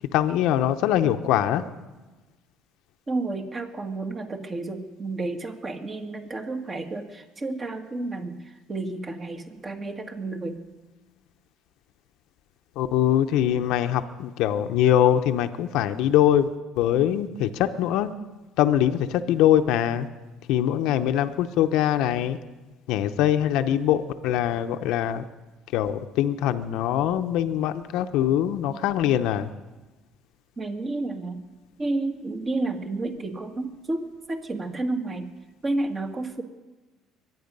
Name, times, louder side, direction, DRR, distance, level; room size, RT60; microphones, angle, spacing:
voice 1, 0.1-1.6 12.8-16.5 16.8-18.1 18.6-20.1 20.5-22.4 22.9-25.2 25.7-29.5, left 11 dB, 75° left, 8 dB, 0.7 m, -23 dB
voice 2, 3.1-8.4 8.7-10.6 30.6-31.4 31.8-35.3 35.6-36.4, right 2 dB, 30° right, 5 dB, 1.9 m, -31 dB
23.5 x 9.3 x 5.4 m, 1.2 s
supercardioid pair, 90°, 0 cm